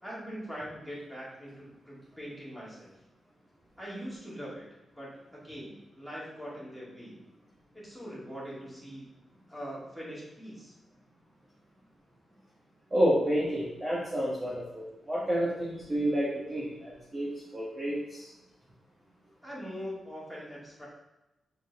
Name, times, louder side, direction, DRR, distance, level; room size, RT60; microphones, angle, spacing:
voice 1, 0.0-2.9 3.8-4.6 4.9-7.2 7.7-9.1 9.5-10.7 19.4-20.9, equal, ahead, -7 dB, 2.2 m, -42 dB
voice 2, 12.9-18.3, equal, 20° right, -7 dB, 1.4 m, -30 dB
6.7 x 4.5 x 4.1 m, 0.98 s
wide cardioid pair, 155°, 0 cm